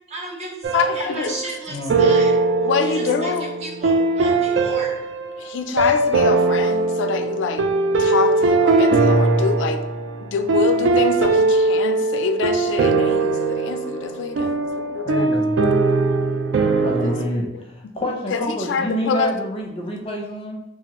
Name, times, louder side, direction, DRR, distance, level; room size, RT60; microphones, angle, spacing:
voice 1, 0.1-2.4 3.0-3.1 3.6-5.0, right 2 dB, 35° right, -1 dB, 0.6 m, -33 dB
sound 1, 0.6-1.5 1.9-17.2, right 3 dB, 75° right, 0.3 m, -20 dB
voice 2, 0.7-1.4 2.7-3.5 5.4-7.7 8.0-9.8 10.2-14.6 14.9-15.4 17.0-17.6 18.3-19.3, left 6 dB, 85° left, 7 dB, 0.3 m, -25 dB
voice 3, 1.7-2.1 15.1-15.6 16.8-20.6, equal, 30° left, 0 dB, 0.5 m, -27 dB
2.9 x 2.4 x 2.9 m, 0.85 s
head